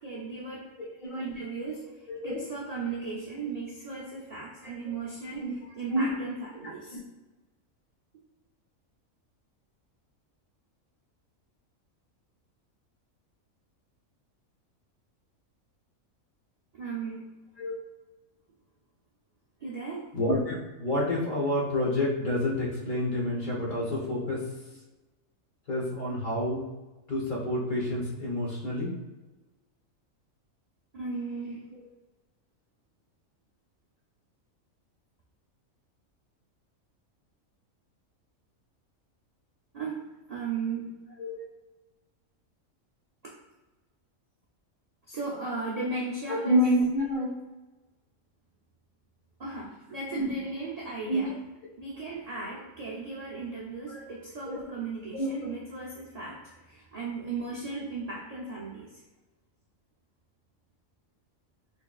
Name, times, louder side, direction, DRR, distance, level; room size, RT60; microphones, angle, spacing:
voice 1, 0.0-0.7 1.2-1.9 2.2-7.0 16.7-17.3 19.6-20.1 30.9-31.7 39.7-40.0 40.3-40.9 45.1-46.6 49.4-51.3 51.8-59.0, right 4 dB, 45° right, -6 dB, 0.5 m, -36 dB
voice 2, 2.1-2.4 4.6-4.7 5.4-5.5 5.9-6.1 6.6-6.7 17.6-17.7 20.1-24.7 25.7-26.6 27.1-28.9 41.2-41.4 46.3-47.4 50.1-50.3 51.1-51.3 53.9-54.1 54.4-54.7 55.1-55.3, left 1 dB, 40° left, -5 dB, 1.0 m, -28 dB
3.6 x 3.2 x 2.3 m, 1.1 s
omnidirectional pair, 1.4 m